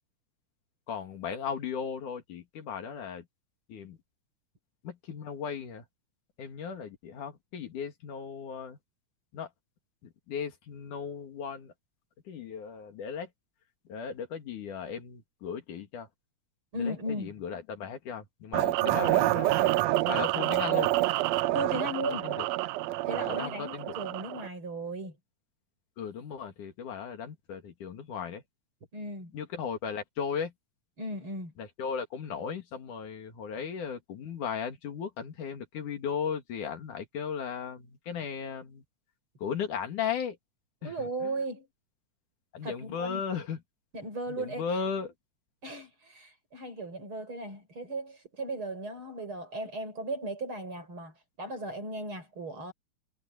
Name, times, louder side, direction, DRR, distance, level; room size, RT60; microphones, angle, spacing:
voice 1, 0.9-3.3 3.7-4.0 4.8-5.8 6.4-8.8 9.3-9.5 10.0-11.7 12.3-13.3 13.9-16.1 16.8-19.8 20.1-20.9 22.0-22.5 23.2-23.9 26.0-28.4 29.3-30.5 31.6-38.8 39.4-40.4 40.8-40.9 41.2-41.3 42.5-43.6 44.3-45.1, left 7 dB, 75° left, 3.6 m, -36 dB
voice 2, 16.7-17.3 21.5-22.3 23.1-25.2 28.9-29.3 31.0-31.5 40.8-41.7 42.6-43.2 43.9-44.7 45.6-52.7, right 1 dB, 40° right, 7.0 m, -36 dB
sound 1, 18.5-24.5, right 17 dB, 85° right, 1.5 m, -27 dB
omnidirectional pair, 3.6 m